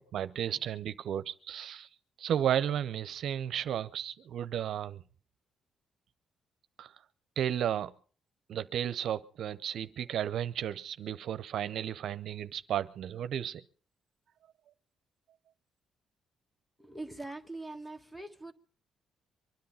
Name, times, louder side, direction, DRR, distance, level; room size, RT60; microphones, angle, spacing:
voice 1, 0.0-1.9 2.2-5.0 6.8-6.9 7.4-7.9 8.5-13.6, right 10 dB, 70° right, 0.7 m, -33 dB
voice 2, 16.8-18.5, right 2 dB, 5° left, 1.6 m, -42 dB
24.0 x 10.5 x 5.6 m
cardioid pair, 90°, 0 cm